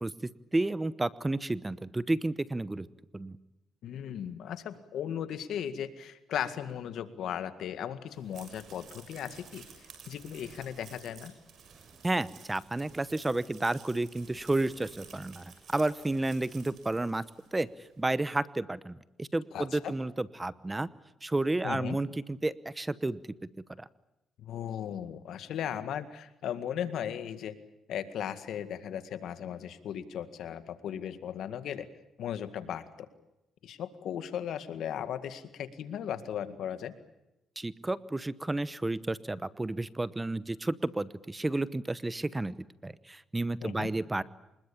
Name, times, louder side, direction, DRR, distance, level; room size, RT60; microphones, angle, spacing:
voice 1, 0.5-2.9 3.1-3.4 12.0-17.2 17.5-17.7 18.0-20.9 21.2-23.2 23.8-23.9 37.6-42.6 42.8-44.2, right 2 dB, 15° right, 17 dB, 0.9 m, -31 dB
voice 2, 3.8-11.3 19.5-19.9 21.6-22.0 24.4-27.6 27.9-31.9 32.2-33.1 33.6-37.0 43.6-43.9, left 9 dB, 75° left, 11 dB, 1.9 m, -37 dB
sound 1, 8.1-17.7, right 6 dB, 65° right, 6.4 m, -53 dB
26.0 x 21.0 x 8.7 m, 0.91 s
cardioid pair, 90°, 0 cm